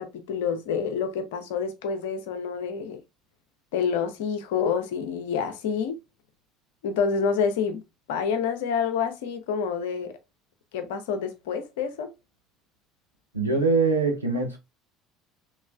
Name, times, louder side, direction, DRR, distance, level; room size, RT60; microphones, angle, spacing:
voice 1, 0.0-3.0 3.7-6.0 6.8-7.8 8.1-10.1 10.7-12.1, left 6 dB, 65° left, 0.5 m, -28 dB
voice 2, 13.3-14.6, right 3 dB, 85° right, 0.6 m, -23 dB
3.0 x 2.9 x 2.3 m
figure-of-eight pair, 60°, 0 cm